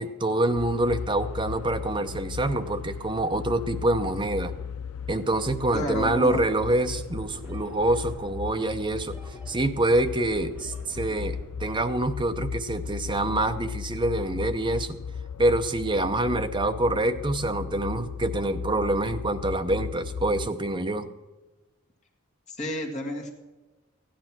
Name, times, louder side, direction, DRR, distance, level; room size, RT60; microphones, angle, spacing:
voice 1, 0.0-4.5 5.1-15.0 15.4-21.1, right 1 dB, 20° right, 7 dB, 0.8 m, -26 dB
sound 1, 0.5-20.5, left 6 dB, 75° left, 0.5 m, -36 dB
voice 2, 5.7-6.4 22.5-23.3, left 1 dB, 30° left, 0 dB, 2.0 m, -31 dB
sound 2, 5.8-11.8, left 1 dB, 5° right, 2.9 m, -48 dB
15.0 x 10.5 x 6.0 m, 1.1 s
head